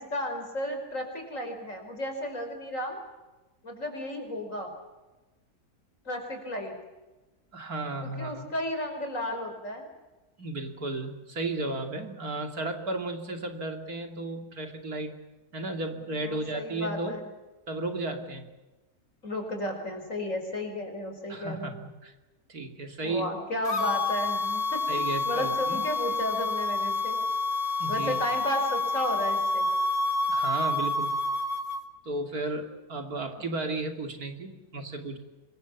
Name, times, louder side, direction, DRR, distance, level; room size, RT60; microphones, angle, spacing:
voice 1, 0.0-3.0 3.6-4.7 6.1-6.8 8.0-9.9 16.2-17.3 19.2-21.8 23.0-24.9 25.3-27.2 27.9-29.7, left 1 dB, 60° left, 5 dB, 5.3 m, -33 dB
voice 2, 7.5-8.5 10.4-15.1 15.5-17.2 17.7-18.5 21.3-22.1 22.5-23.3 24.9-25.8 27.8-28.2 30.3-31.1 32.0-35.2, right 2 dB, 80° right, 5 dB, 3.2 m, -34 dB
sound 1, 23.6-31.8, left 2 dB, 75° left, 2.2 m, -28 dB
26.0 x 23.0 x 7.2 m, 1.1 s
omnidirectional pair, 1.6 m